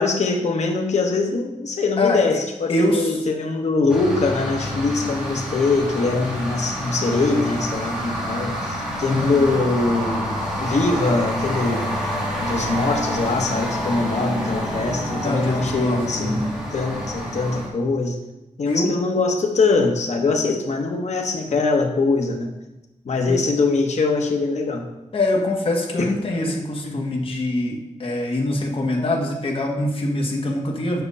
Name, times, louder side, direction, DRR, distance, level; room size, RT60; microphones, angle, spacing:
voice 1, 0.0-10.3 10.6-11.9 12.4-16.4 16.7-18.2 18.6-22.5 23.0-24.9 26.0-26.2 26.5-26.6 26.8-27.0, left 3 dB, 60° left, 2 dB, 1.2 m, -22 dB
voice 2, 2.7-3.1 9.1-9.5 15.2-16.5 18.7-18.9 23.3-23.4 25.1-31.0, left 1 dB, 45° left, 0 dB, 1.6 m, -24 dB
sound 1, 3.9-17.7, equal, 5° right, 2.9 m, -28 dB
8.0 x 5.9 x 5.5 m, 0.97 s
wide cardioid pair, 110°, 13 cm